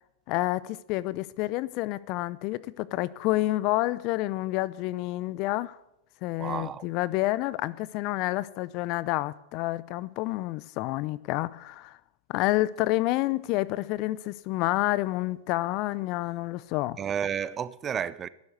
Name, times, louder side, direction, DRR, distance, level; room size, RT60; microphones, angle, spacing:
voice 1, 0.3-5.8 6.2-12.0 12.3-17.0, left 18 dB, 50° left, 0.6 m, -29 dB
voice 2, 6.4-6.9 17.0-18.3, right 8 dB, 25° right, 0.6 m, -31 dB
11.5 x 11.5 x 8.1 m
hypercardioid pair, 100°, 0 cm